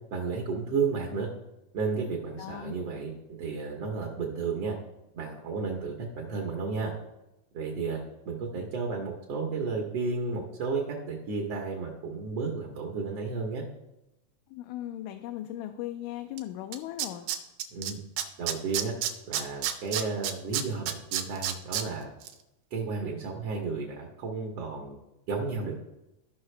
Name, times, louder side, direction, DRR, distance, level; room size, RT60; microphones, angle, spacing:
voice 1, 0.1-1.3 1.7-3.1 3.4-4.7 5.1-6.9 7.5-8.0 8.2-13.6 17.7-18.0 18.4-18.9 19.3-22.1 22.7-25.0 25.3-25.7, right 4 dB, 60° right, 0 dB, 1.7 m, -32 dB
voice 2, 2.4-2.7 14.5-17.3, left 13 dB, 80° left, 6 dB, 2.1 m, -38 dB
Tools, 16.4-16.5 16.7-17.9 18.2-21.8 22.2-22.3, right 11 dB, 80° right, 2.3 m, -29 dB
14.0 x 5.7 x 3.3 m, 0.93 s
omnidirectional pair, 3.8 m